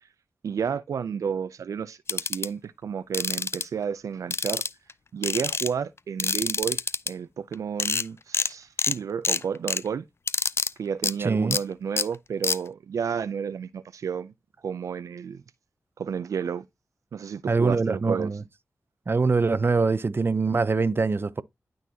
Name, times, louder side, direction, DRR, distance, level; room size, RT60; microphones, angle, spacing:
voice 1, 0.4-4.6 5.1-6.8 7.1-10.1 10.8-14.3 14.6-15.4 16.0-16.7 17.1-18.3, right 7 dB, 85° right, 0.4 m, -31 dB
sound 1, 2.1-2.5 3.1-3.6 4.3-4.9 5.2-5.7 6.2-7.1 7.5-7.6 7.8-8.0 8.3-8.5 8.8-9.0 9.2-9.8 10.3-10.7 11.0-11.1 11.5-11.6 12.0-12.1 12.4-12.6, left 5 dB, 50° left, 0.3 m, -26 dB
voice 2, 11.2-11.6 17.5-18.4 19.1-21.4, right 4 dB, 45° right, 0.6 m, -23 dB
11.5 x 4.0 x 2.8 m
cardioid pair, 50°, 5 cm